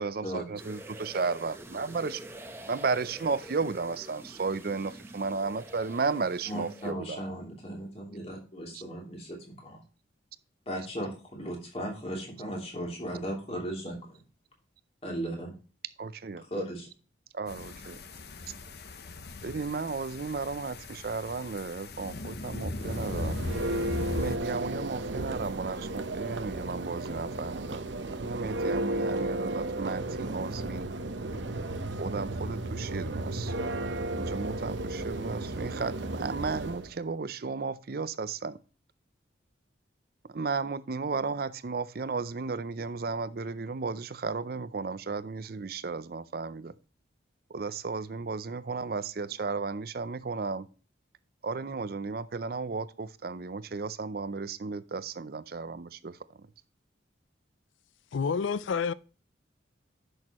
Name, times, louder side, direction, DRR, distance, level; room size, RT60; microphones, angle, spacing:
voice 1, 0.0-2.2 2.7-7.2 8.7-8.8 16.0-16.4 17.3-18.0 19.4-23.4 24.1-30.9 31.9-33.5 34.1-38.6 40.3-46.7 47.5-50.7 51.4-56.2, right 4 dB, 50° right, 0.5 m, -34 dB
sound 1, 0.6-6.9, right 1 dB, 10° right, 0.9 m, -46 dB
voice 2, 6.5-9.8 10.7-14.2 15.0-15.5 16.5-16.9, right 1 dB, 30° left, 2.9 m, -36 dB
sound 2, 17.5-24.4, left 2 dB, 55° left, 0.8 m, -38 dB
Church bell, 22.6-36.9, right 1 dB, 70° right, 0.9 m, -34 dB
voice 3, 58.1-58.9, left 5 dB, 80° left, 0.4 m, -28 dB
10.5 x 6.5 x 3.0 m
head